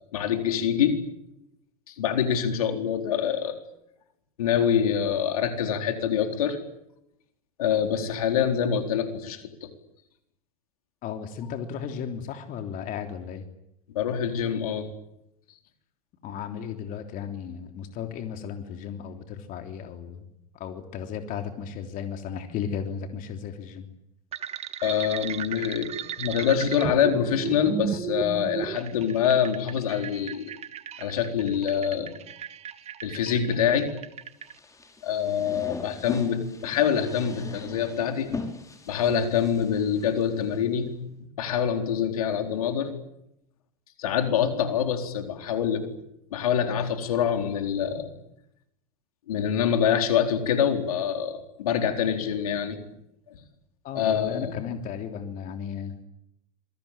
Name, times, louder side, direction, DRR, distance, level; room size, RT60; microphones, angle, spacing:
voice 1, 0.1-1.0 1.9-3.5 4.4-6.6 7.6-9.7 13.9-14.9 24.8-25.9 26.2-30.5 31.0-32.1 33.0-33.9 35.0-38.3 38.9-40.9 41.4-42.9 44.0-45.9 46.3-48.1 49.3-52.8 53.3-53.4 53.9-54.5, left 8 dB, 80° left, 5 dB, 4.2 m, -25 dB
voice 2, 11.0-13.4 16.2-20.2 20.5-23.9 53.8-56.0, left 7 dB, 45° left, 5 dB, 3.4 m, -35 dB
sound 1, 24.3-34.5, right 9 dB, 35° right, 1.5 m, -35 dB
sound 2, 34.4-40.6, left 3 dB, 15° left, 5.9 m, -40 dB
27.0 x 22.0 x 9.0 m, 0.81 s
hypercardioid pair, 90°, 18 cm